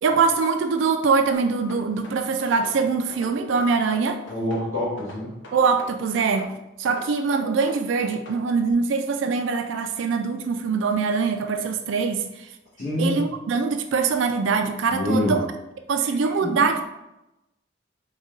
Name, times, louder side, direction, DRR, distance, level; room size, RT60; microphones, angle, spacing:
voice 1, 0.0-4.2 5.5-6.5 6.8-12.5 13.0-15.5 15.9-16.8, right 5 dB, 90° right, 7 dB, 0.4 m, -23 dB
sound 1, 1.3-2.8 3.1-4.7 5.0-6.6 6.9-8.4, equal, 80° left, 0.6 m, -42 dB
voice 2, 4.3-5.3 12.8-13.2 14.9-15.4 16.0-16.1 16.4-16.5, left 1 dB, 45° left, -12 dB, 1.4 m, -26 dB
4.0 x 2.3 x 3.7 m, 0.94 s
head